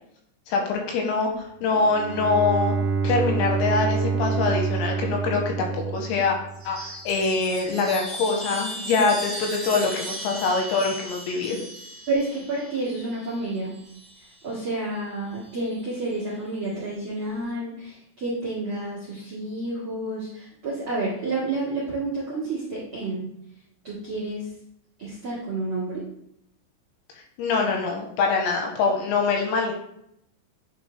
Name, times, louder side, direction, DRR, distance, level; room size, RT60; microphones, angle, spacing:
voice 1, 0.5-2.8 3.0-6.4 6.6-11.6 27.4-29.7, left 4 dB, 85° left, 2 dB, 2.7 m, -24 dB
Bowed string instrument, 1.7-6.7, right 4 dB, 65° right, 2.2 m, -27 dB
Chime, 6.5-14.3 15.5-16.2, right 1 dB, 40° right, 1.1 m, -37 dB
voice 2, 12.1-13.7 14.4-23.3 23.8-24.5 25.0-26.0, right 2 dB, 85° right, -8 dB, 1.1 m, -30 dB
9.7 x 3.7 x 3.1 m, 0.75 s
omnidirectional pair, 5.6 m